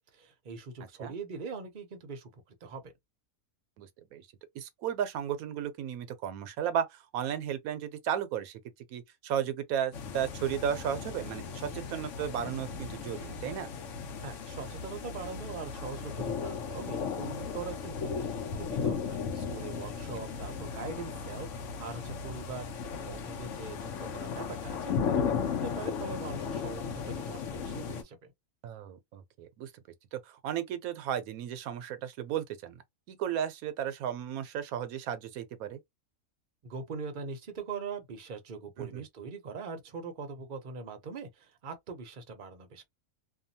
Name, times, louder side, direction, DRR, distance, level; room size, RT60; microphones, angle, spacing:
voice 1, 0.0-2.9 14.2-22.7 23.0-28.2 36.6-42.9, right 4 dB, 45° right, 0.7 m, -42 dB
voice 2, 3.8-4.3 4.5-8.6 8.9-13.7 28.6-29.7 30.1-32.8 33.1-35.8 38.8-39.1, right 9 dB, 80° right, 1.0 m, -34 dB
sound 1, 9.9-28.0, left 6 dB, 65° left, 1.0 m, -36 dB
2.7 x 2.3 x 2.6 m
omnidirectional pair, 1.5 m